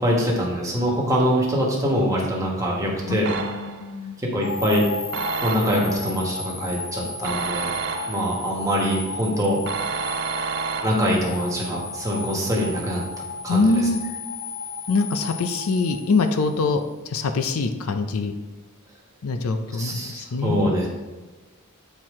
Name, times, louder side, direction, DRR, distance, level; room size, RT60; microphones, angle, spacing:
voice 1, 0.0-3.3 4.2-4.8 5.4-7.7 8.1-9.6 10.4-13.0 13.4-13.9 19.7-20.9, equal, 15° right, -3 dB, 1.4 m, -24 dB
voice 2, 3.1-4.1 13.5-14.0 14.9-16.8 17.1-18.3 19.2-20.7, left 3 dB, 75° left, 7 dB, 0.5 m, -24 dB
sound 1, 3.3-3.9 5.1-6.0 7.2-8.4 9.7-11.3, right 5 dB, 55° right, 0.6 m, -30 dB
sound 2, 4.4-16.6, left 3 dB, 40° left, 1.4 m, -34 dB
7.8 x 4.4 x 3.6 m, 1.2 s
head